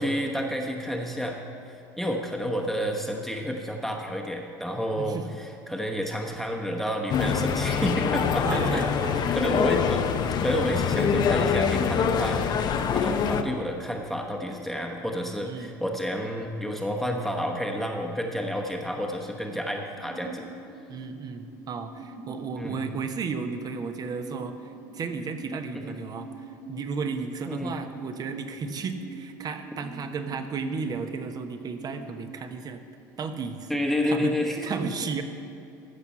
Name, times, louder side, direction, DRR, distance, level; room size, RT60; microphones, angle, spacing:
voice 1, 0.0-1.4 2.0-8.8 9.3-10.1 10.4-12.4 12.9-20.5 22.6-22.8 25.7-25.9 27.5-27.7 33.7-34.6, equal, ahead, 0 dB, 1.1 m, -30 dB
sound 1, 7.1-13.4, left 6 dB, 45° left, 0.7 m, -25 dB
voice 2, 8.4-9.4 15.4-16.0 20.9-26.3 26.7-32.8 33.2-33.7 34.0-34.3 34.6-35.2, right 5 dB, 40° right, 7 dB, 1.0 m, -34 dB
sound 2, 20.0-32.7, right 2 dB, 65° right, 2.0 m, -44 dB
14.5 x 6.0 x 5.6 m, 2.7 s
hypercardioid pair, 75°, 10 cm